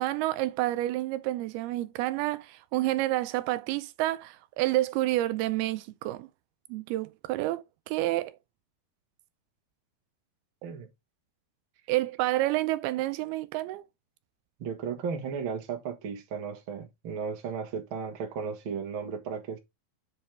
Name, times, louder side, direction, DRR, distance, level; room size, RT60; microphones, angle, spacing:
voice 1, 0.0-6.3 6.7-8.4 11.9-13.8, right 17 dB, 85° right, 2.5 m, -29 dB
voice 2, 14.6-19.6, right 6 dB, 45° right, 1.8 m, -35 dB
7.6 x 5.7 x 3.4 m
omnidirectional pair, 4.5 m